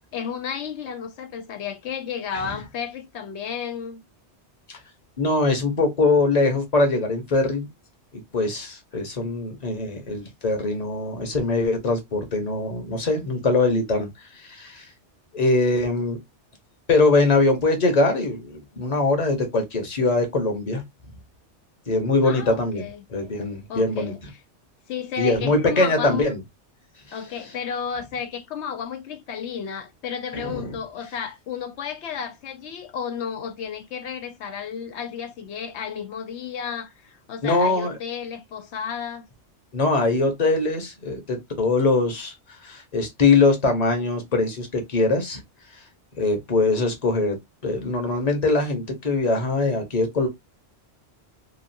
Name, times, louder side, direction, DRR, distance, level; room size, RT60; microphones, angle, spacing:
voice 1, 0.0-4.0 22.2-23.0 23.7-24.2 24.9-26.3 27.1-39.3, left 7 dB, 75° left, 0.9 m, -32 dB
voice 2, 5.2-7.7 8.3-14.9 15.3-16.2 16.9-20.8 21.9-22.8 23.1-24.1 25.2-26.4 27.1-27.2 30.3-30.7 37.4-37.9 39.7-42.3 42.6-45.4 45.7-45.8 46.2-47.4 47.6-50.3, left 3 dB, 40° left, 1.0 m, -22 dB
3.0 x 2.4 x 2.6 m
omnidirectional pair, 1.2 m